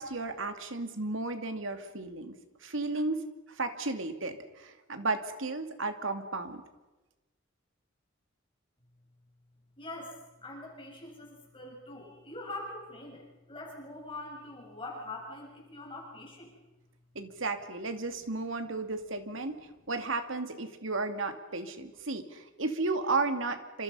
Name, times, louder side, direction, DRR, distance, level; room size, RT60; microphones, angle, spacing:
voice 1, 0.0-2.3 2.6-3.2 3.5-6.6 17.1-19.6 19.9-23.8, right 3 dB, 75° right, 7 dB, 2.5 m, -33 dB
voice 2, 9.8-16.5, left 2 dB, 25° left, -1 dB, 6.9 m, -43 dB
28.5 x 27.0 x 5.6 m, 1.1 s
head